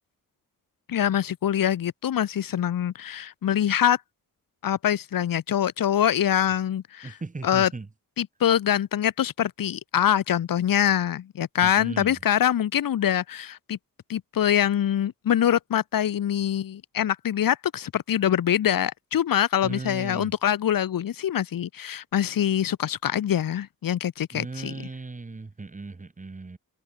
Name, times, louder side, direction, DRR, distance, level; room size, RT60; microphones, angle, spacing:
voice 1, 0.9-4.0 4.6-7.1 7.4-7.7 8.2-13.8 14.1-24.7, left 10 dB, 90° left, 1.5 m, -24 dB
voice 2, 7.0-7.9 11.6-12.2 19.6-20.3 24.3-26.6, right 3 dB, 25° right, 3.2 m, -37 dB
wide cardioid pair, 145°, 33 cm